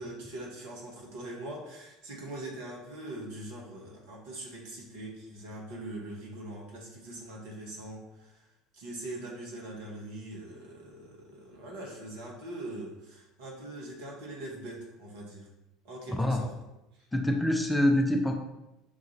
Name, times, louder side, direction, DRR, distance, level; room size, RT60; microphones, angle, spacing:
voice 1, 0.0-8.5 8.7-15.5 15.8-16.5 16.9-17.1, right 1 dB, 60° right, -2 dB, 1.1 m, -42 dB
voice 2, 16.1-16.4 17.1-18.4, left 1 dB, 10° left, 3 dB, 0.5 m, -25 dB
6.5 x 2.5 x 2.9 m, 0.98 s
figure-of-eight pair, 65°, 0 cm